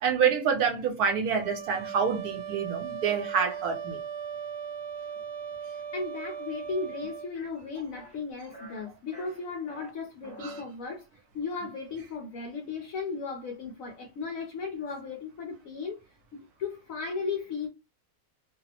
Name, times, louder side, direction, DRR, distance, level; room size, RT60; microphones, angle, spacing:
voice 1, 0.0-4.0 10.4-10.5, right 6 dB, 75° right, 1.2 m, -27 dB
sound 1, 1.3-7.3, right 7 dB, 60° right, 0.8 m, -38 dB
voice 2, 5.9-11.1 11.3-16.0 16.3-17.7, left 4 dB, 70° left, 0.9 m, -36 dB
sound 2, 7.3-7.5 7.9-8.2 8.5-8.8 9.1-9.9 10.2-10.6, right 1 dB, 5° left, 0.8 m, -47 dB
2.8 x 2.0 x 2.8 m
omnidirectional pair, 1.6 m